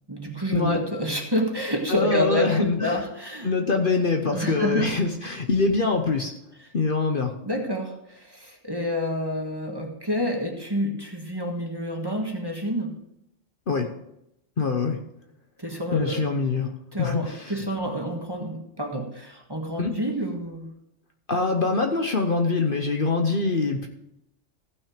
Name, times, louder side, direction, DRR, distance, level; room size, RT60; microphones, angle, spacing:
voice 1, 0.1-3.5 4.3-4.9 7.4-13.0 15.6-16.3 16.9-20.7, equal, 20° right, 2 dB, 1.5 m, -28 dB
voice 2, 1.9-3.0 3.4-6.3 6.7-7.3 13.7-13.9 14.6-15.0 15.9-17.6 19.8-20.0 21.3-23.9, left 3 dB, 45° left, 4 dB, 1.0 m, -24 dB
15.0 x 6.2 x 5.0 m, 0.81 s
omnidirectional pair, 1.3 m